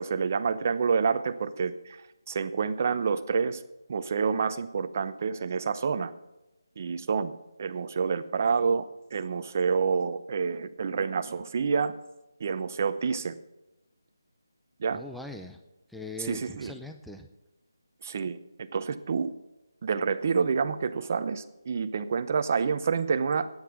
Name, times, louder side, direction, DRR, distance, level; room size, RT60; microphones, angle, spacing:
voice 1, 0.0-2.0 2.3-3.6 3.9-6.1 6.8-7.3 7.6-8.9 9.1-11.9 12.4-13.4 14.8-15.0 16.2-16.7 18.0-19.3 19.8-23.5, right 5 dB, 40° right, 11 dB, 0.8 m, -28 dB
voice 2, 14.9-15.6 15.9-17.3, left 2 dB, ahead, 4 dB, 0.5 m, -41 dB
13.5 x 9.7 x 6.1 m, 0.99 s
figure-of-eight pair, 160°, 2 cm